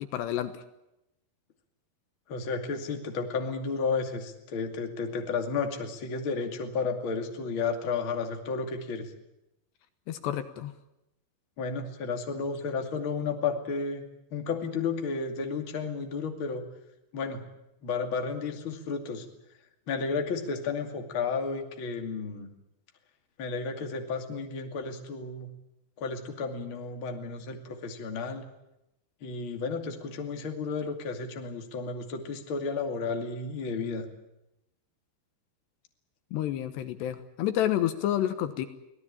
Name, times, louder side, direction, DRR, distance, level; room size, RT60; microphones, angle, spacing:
voice 1, 0.1-0.6 10.1-10.7 36.3-38.7, left 12 dB, 75° left, 10 dB, 3.2 m, -29 dB
voice 2, 2.3-9.1 11.6-14.0 14.3-16.6 17.1-17.4 17.8-19.3 19.9-22.5 23.4-25.5 26.0-28.4 29.2-34.0, left 4 dB, 35° left, 4 dB, 2.5 m, -32 dB
25.0 x 18.0 x 8.7 m, 0.88 s
omnidirectional pair, 5.0 m